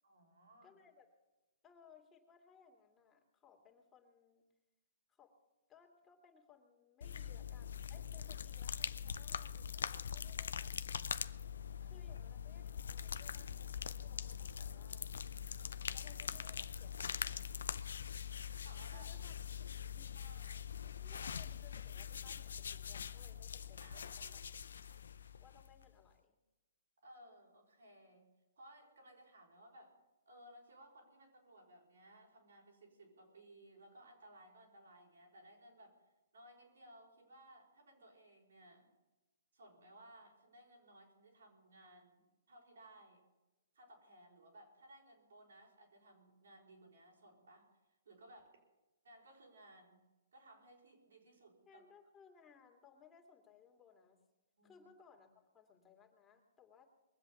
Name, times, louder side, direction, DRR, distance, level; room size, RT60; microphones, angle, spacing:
voice 1, 0.0-0.8 18.6-19.1 20.2-20.7 21.1-21.3 23.8-24.4 27.0-30.0 30.3-36.0 36.3-38.9 39.5-43.2 43.7-47.7 48.1-48.6 49.0-50.0 50.3-51.8 54.6-54.8, right 1 dB, 75° right, 0 dB, 5.4 m, -60 dB
voice 2, 0.6-1.1 1.6-4.5 5.1-5.4 5.7-10.7 11.8-15.1 15.9-17.6 18.9-19.3 19.9-20.4 21.0-24.4 25.4-26.4 51.7-54.2 54.6-56.8, left 7 dB, 20° left, 1 dB, 2.4 m, -64 dB
sound 1, 7.0-25.9, left 7 dB, 75° left, 0.6 m, -43 dB
21.5 x 8.0 x 7.1 m, 1.1 s
hypercardioid pair, 130°, 0 cm